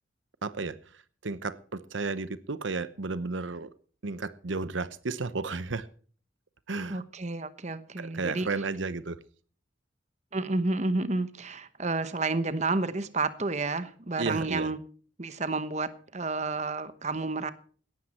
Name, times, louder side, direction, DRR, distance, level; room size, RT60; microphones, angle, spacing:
voice 1, 0.4-3.7 4.0-5.9 6.7-7.0 8.0-9.2 14.2-14.7, right 3 dB, 80° right, 0.9 m, -33 dB
voice 2, 6.9-8.5 10.3-14.8 15.2-17.5, right 3 dB, 35° right, 1.1 m, -30 dB
17.5 x 12.5 x 4.3 m
head